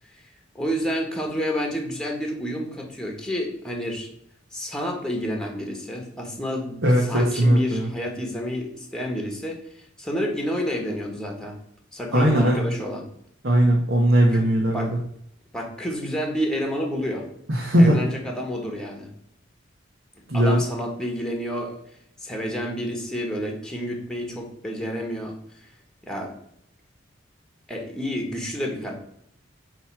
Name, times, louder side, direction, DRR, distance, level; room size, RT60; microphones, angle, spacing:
voice 1, 0.5-4.1 4.5-11.6 11.9-13.1 14.3-14.9 15.5-17.3 17.8-19.1 20.3-21.7 22.2-25.3 25.6-25.7 26.0-26.3 27.7-28.9, equal, 5° left, 2 dB, 1.4 m, -29 dB
voice 2, 6.8-7.9 12.1-12.7 13.4-15.0 17.5-18.0 20.3-20.6, right 1 dB, 60° right, -2 dB, 1.3 m, -19 dB
7.9 x 3.2 x 6.1 m, 0.71 s
head